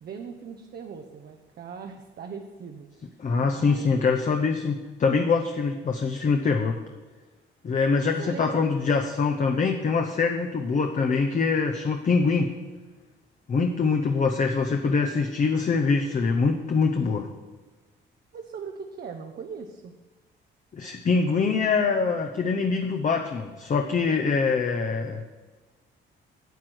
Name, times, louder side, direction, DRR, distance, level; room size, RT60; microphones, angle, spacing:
voice 1, 0.0-2.9 3.4-4.0 8.2-8.7 18.3-19.9, right 6 dB, 55° right, 4 dB, 0.9 m, -39 dB
voice 2, 3.2-6.8 7.6-12.5 13.5-17.3 20.7-25.2, left 4 dB, 40° left, 4 dB, 0.8 m, -24 dB
9.2 x 7.5 x 6.3 m, 1.3 s
cardioid pair, 90°, 20 cm